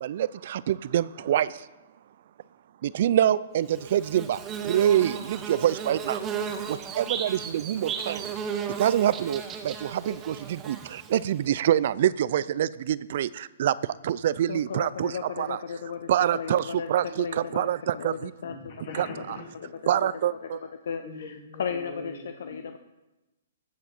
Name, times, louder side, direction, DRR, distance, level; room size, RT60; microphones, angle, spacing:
voice 1, 0.0-1.7 2.8-6.2 6.7-8.3 8.8-15.1 15.4-15.6 16.1-18.3 18.9-19.1 19.9-20.6, right 11 dB, 55° right, 18 dB, 0.4 m, -26 dB
Bird / Buzz, 3.7-11.4, right 7 dB, 20° right, 1.0 m, -35 dB
voice 2, 14.5-18.5 19.2-19.3 20.0-20.1 20.4-20.5 20.8-22.8, left 6 dB, 70° left, 8 dB, 0.6 m, -35 dB
voice 3, 18.2-19.9 20.6-20.7 21.0-22.6, left 3 dB, 50° left, 1 dB, 2.9 m, -42 dB
15.0 x 8.2 x 4.4 m, 1.0 s
hypercardioid pair, 140°, 0 cm